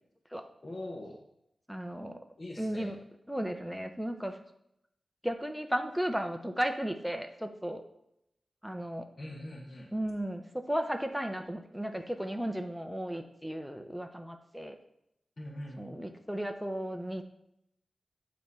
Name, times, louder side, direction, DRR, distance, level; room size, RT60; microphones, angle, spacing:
voice 1, 0.6-1.2 2.4-2.9 9.2-9.9 15.4-16.1, left 1 dB, 45° left, -1 dB, 1.0 m, -42 dB
voice 2, 1.7-2.2 2.6-3.0 3.3-4.4 5.2-7.8 8.6-9.1 9.9-14.8 15.8-17.2, equal, ahead, 5 dB, 0.7 m, -35 dB
8.5 x 3.0 x 5.4 m, 0.79 s
wide cardioid pair, 115°, 0 cm